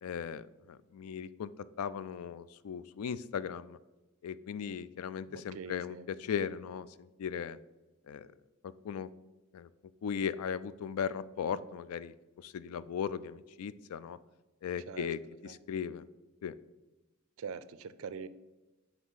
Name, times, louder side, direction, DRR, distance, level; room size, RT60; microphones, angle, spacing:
voice 1, 0.0-1.5 1.8-3.8 4.2-7.6 8.1-8.3 8.8-9.1 9.5-9.7 10.0-14.2 14.6-15.2 15.7-16.0 16.4-16.5, left 7 dB, 80° left, 17 dB, 0.3 m, -37 dB
voice 2, 5.3-6.1 14.9-15.6 17.4-18.3, right 6 dB, 65° right, 15 dB, 0.4 m, -44 dB
7.3 x 3.4 x 5.5 m, 1.1 s
head